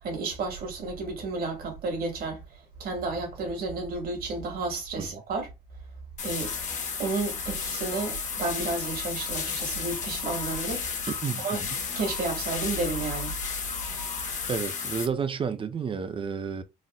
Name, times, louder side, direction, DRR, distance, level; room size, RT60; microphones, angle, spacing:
voice 1, 0.0-5.5 6.2-6.5 7.0-10.8 11.4-11.6 12.0-13.4, right 3 dB, 60° right, 2.0 m, -32 dB
sound 1, 6.2-15.0, left 6 dB, 45° left, 1.0 m, -33 dB
voice 2, 11.2-11.7 14.5-16.6, right 6 dB, 30° right, 0.6 m, -31 dB
4.1 x 2.6 x 2.3 m
cardioid pair, 110°, 17 cm